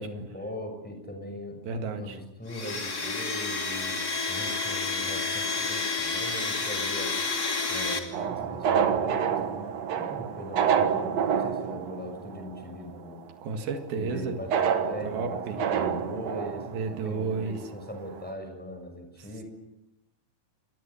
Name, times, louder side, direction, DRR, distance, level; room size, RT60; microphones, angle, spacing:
voice 1, 0.0-4.0 4.3-7.1 7.7-9.7 10.0-13.3 14.0-14.5 14.8-16.7 17.0-19.4, left 1 dB, ahead, 4 dB, 6.2 m, -40 dB
voice 2, 1.6-2.2 13.4-14.4 15.0-15.6 16.7-17.6, right 4 dB, 85° right, 6 dB, 3.8 m, -32 dB
Domestic sounds home sounds, 2.5-8.0, left 4 dB, 30° left, 2.9 m, -30 dB
sound 1, 8.1-12.8 13.1-13.2 14.5-17.4 17.9-18.0 18.2-18.3, right 7 dB, 55° right, 2.2 m, -28 dB
28.5 x 22.0 x 7.1 m, 0.92 s
omnidirectional pair, 4.1 m